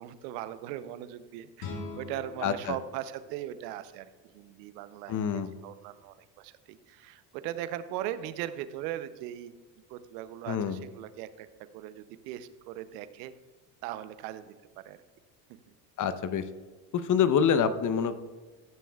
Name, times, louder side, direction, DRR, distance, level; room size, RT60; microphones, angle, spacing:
voice 1, 0.0-9.5 9.9-11.5 11.7-13.3 13.8-14.5 14.8-15.0 15.5-15.6, right 12 dB, 90° right, 13 dB, 0.7 m, -39 dB
sound 1, 1.6-4.6, left 3 dB, 80° left, 2.2 m, -44 dB
voice 2, 2.4-2.8 5.1-5.5 10.5-10.8 16.0-16.4 16.9-18.2, left 7 dB, 40° left, 12 dB, 0.8 m, -26 dB
14.0 x 9.1 x 2.3 m, 1.4 s
supercardioid pair, 90°, 47 cm